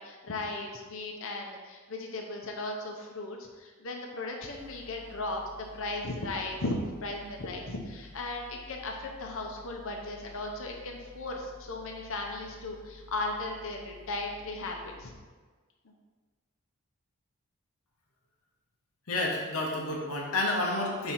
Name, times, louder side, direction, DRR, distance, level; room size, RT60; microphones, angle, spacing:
voice 1, 0.0-15.1 15.8-15.9, left 2 dB, 65° left, 1 dB, 0.8 m, -36 dB
sound 1, 4.4-15.0, left 3 dB, 15° right, 0.8 m, -52 dB
voice 2, 19.1-21.1, left 2 dB, 90° left, -1 dB, 0.9 m, -30 dB
5.6 x 3.8 x 4.5 m, 1.4 s
head